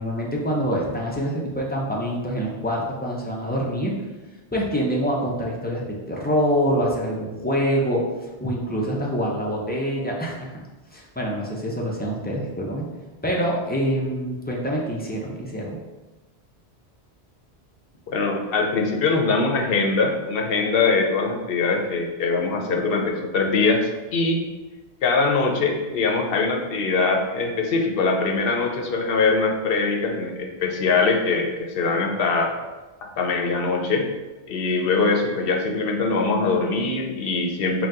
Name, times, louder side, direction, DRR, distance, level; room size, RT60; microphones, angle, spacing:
voice 1, 0.0-3.9 4.5-8.0 8.4-10.5 10.9-12.8 13.2-15.8, equal, 15° left, -3 dB, 0.3 m, -25 dB
voice 2, 18.1-24.4 25.0-32.6 33.2-34.1 34.5-37.9, left 4 dB, 60° left, 2 dB, 0.8 m, -22 dB
4.4 x 2.3 x 3.7 m, 1.2 s
omnidirectional pair, 1.1 m